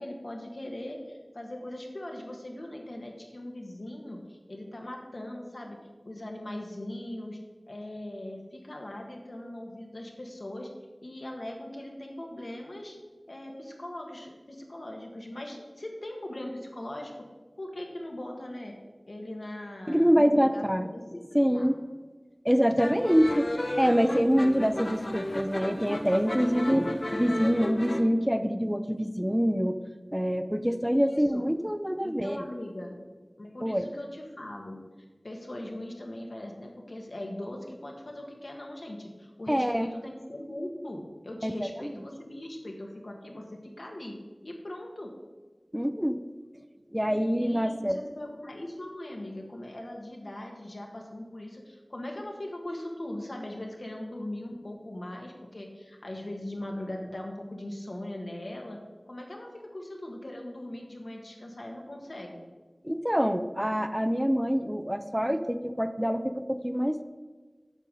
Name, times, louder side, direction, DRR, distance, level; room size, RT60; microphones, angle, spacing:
voice 1, 0.0-5.8 6.0-7.4 7.7-10.7 11.0-13.0 13.3-17.1 17.6-18.8 19.1-21.7 30.9-31.4 32.0-33.0 33.4-34.8 35.2-44.1 44.4-45.1 47.3-58.8 59.1-62.4, left 1 dB, 75° left, 1 dB, 1.6 m, -40 dB
voice 2, 19.9-20.9 21.3-21.8 22.4-23.5 23.8-29.8 30.1-32.4 33.6-33.9 39.5-39.9 41.4-41.9 45.7-46.2 46.9-48.0 62.8-67.0, equal, 5° right, 9 dB, 0.5 m, -25 dB
sound 1, 22.8-28.0, left 1 dB, 55° left, 0.8 m, -33 dB
8.3 x 5.3 x 6.4 m, 1.3 s
wide cardioid pair, 50°, 0 cm